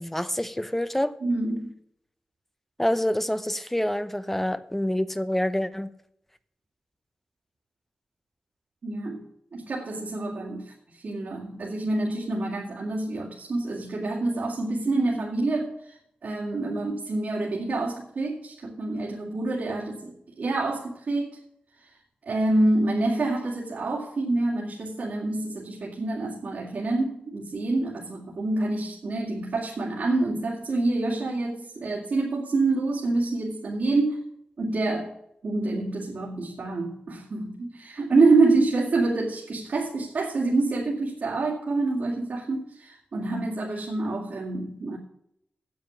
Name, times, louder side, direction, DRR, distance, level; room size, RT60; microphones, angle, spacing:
voice 1, 0.0-1.2 2.8-5.9, left 1 dB, 10° left, 0.8 m, -27 dB
voice 2, 1.2-1.7 8.8-9.2 9.5-21.4 21.8-21.9 22.3-34.3 34.6-35.1 35.4-45.0, right 2 dB, 70° right, 2.6 m, -27 dB
9.3 x 7.5 x 8.0 m
cardioid pair, 75°, 3 cm